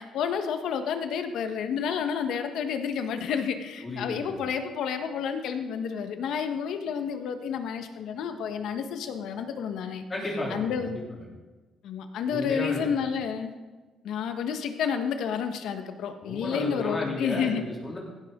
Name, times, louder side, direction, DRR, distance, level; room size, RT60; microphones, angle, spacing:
voice 1, 0.0-10.0 10.5-11.0 11.8-13.5 14.0-17.6, left 7 dB, 75° left, 7 dB, 1.3 m, -30 dB
voice 2, 3.8-4.3 10.1-11.2 12.3-13.1 16.2-18.0, left 2 dB, 25° left, -3 dB, 3.2 m, -34 dB
16.0 x 12.5 x 3.8 m, 1.3 s
cardioid pair, 115°, 0 cm